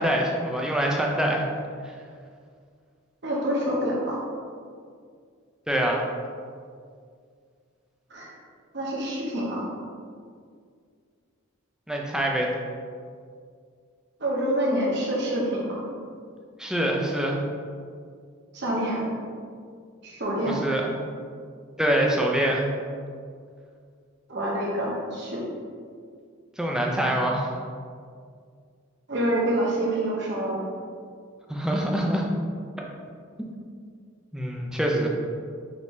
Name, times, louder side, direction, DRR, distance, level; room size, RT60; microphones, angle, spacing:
voice 1, 0.0-1.5 5.7-6.0 11.9-12.5 16.6-17.4 20.4-20.9 21.8-22.7 26.6-27.5 31.5-32.3 34.3-35.1, right 1 dB, 5° right, -1 dB, 0.4 m, -25 dB
voice 2, 3.2-4.2 8.1-8.3 8.7-9.7 14.2-15.8 18.5-19.1 20.0-20.6 24.3-25.4 29.1-30.6, right 1 dB, 55° right, -4 dB, 0.9 m, -27 dB
5.1 x 2.7 x 3.1 m, 2.2 s
head